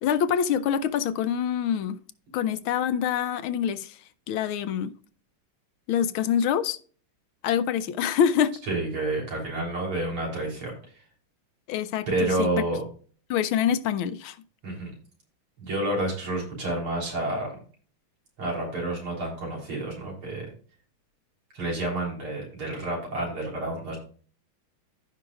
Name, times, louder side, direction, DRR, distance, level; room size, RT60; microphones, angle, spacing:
voice 1, 0.0-2.0 2.3-4.0 4.3-4.9 5.9-6.8 7.4-8.5 11.7-12.5 13.3-14.4, left 8 dB, 80° left, 1.5 m, -25 dB
voice 2, 8.7-10.7 12.1-12.8 14.6-14.9 15.6-17.6 18.4-20.5 21.5-24.0, right 2 dB, 85° right, 4.6 m, -29 dB
15.0 x 5.6 x 2.4 m
omnidirectional pair, 2.3 m